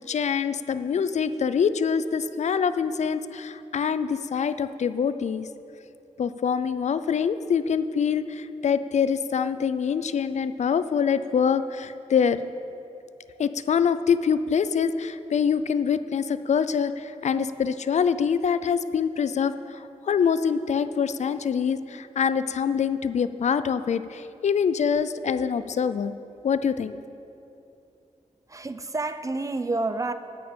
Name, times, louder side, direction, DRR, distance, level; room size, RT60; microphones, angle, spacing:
voice 1, 0.1-5.5 6.2-12.4 13.4-26.1 26.4-27.0, left 6 dB, 65° left, 12 dB, 0.4 m, -25 dB
voice 2, 28.5-30.1, right 2 dB, 25° right, 10 dB, 0.4 m, -29 dB
10.0 x 6.4 x 8.6 m, 2.8 s
wide cardioid pair, 165°, 13 cm